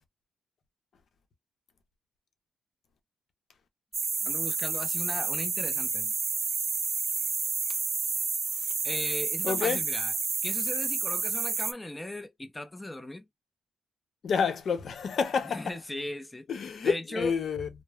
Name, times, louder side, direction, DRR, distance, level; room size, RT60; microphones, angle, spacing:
sound 1, 3.9-11.7, right 5 dB, 40° right, 0.4 m, -30 dB
voice 1, 4.2-6.1 8.8-10.1 10.4-13.3 15.4-16.5 16.8-17.3, left 1 dB, 10° left, 0.6 m, -37 dB
voice 2, 9.4-9.8 14.2-15.6 16.5-17.7, left 6 dB, 55° left, 0.8 m, -28 dB
3.0 x 2.0 x 2.3 m
cardioid pair, 90°, 0 cm